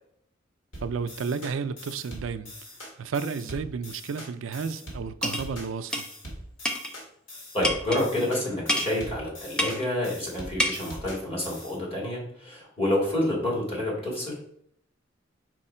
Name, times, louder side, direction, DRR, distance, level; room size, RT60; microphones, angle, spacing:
sound 1, 0.7-11.8, equal, 75° left, 2.1 m, -42 dB
voice 1, 0.8-2.5 3.0-6.1, right 5 dB, 85° right, 0.4 m, -32 dB
sound 2, 5.2-5.5 5.9-6.1 6.7-6.9 7.6-8.0 8.7-8.9 9.6-9.9 10.6-10.7, equal, 5° left, 0.6 m, -27 dB
voice 2, 7.5-14.4, left 1 dB, 30° left, 2.5 m, -28 dB
4.9 x 4.6 x 4.3 m
head